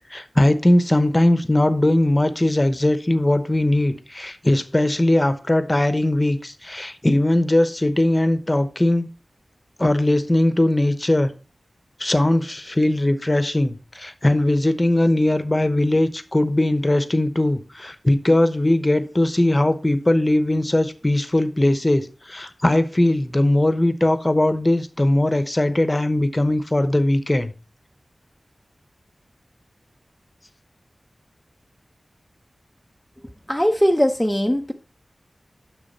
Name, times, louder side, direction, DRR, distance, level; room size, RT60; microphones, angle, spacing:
voice 1, 0.1-9.1 9.8-11.3 12.0-27.5, left 1 dB, 25° left, 0.9 m, -19 dB
voice 2, 33.5-34.7, equal, 5° left, 0.6 m, -19 dB
6.9 x 6.2 x 4.1 m
wide cardioid pair, 55°, 0 cm